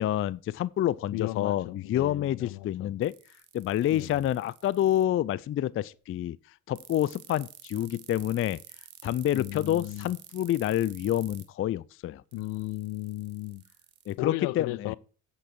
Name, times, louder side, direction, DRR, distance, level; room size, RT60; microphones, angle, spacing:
voice 1, 0.0-3.1 3.5-6.4 6.7-8.6 9.0-12.2 14.1-14.9, left 12 dB, 30° left, 0.4 m, -28 dB
voice 2, 1.1-3.0 3.9-4.2 9.3-10.2 12.3-13.6 14.2-15.0, left 19 dB, 60° left, 0.7 m, -35 dB
sound 1, 3.0-5.0 6.8-11.4 12.3-14.1, right 16 dB, 75° right, 1.5 m, -50 dB
8.6 x 8.5 x 4.5 m
hypercardioid pair, 55°, 45 cm